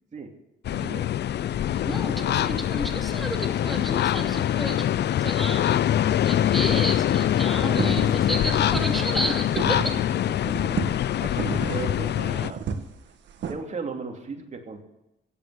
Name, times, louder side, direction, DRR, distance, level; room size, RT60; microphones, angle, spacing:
sound 1, 0.6-12.5, left 11 dB, 60° left, 0.6 m, -24 dB
voice 1, 0.7-1.1 9.7-9.9 10.4-12.6 13.5-14.8, right 4 dB, 35° right, 3 dB, 2.9 m, -36 dB
sound 2, 1.6-7.6, left 9 dB, 85° left, 1.3 m, -47 dB
voice 2, 1.8-5.9 6.2-10.0, equal, ahead, 2 dB, 2.8 m, -32 dB
sound 3, 7.4-10.1 10.4-13.5, right 7 dB, 65° right, 1.9 m, -32 dB
16.5 x 8.5 x 8.3 m, 0.85 s
cardioid pair, 90°, 20 cm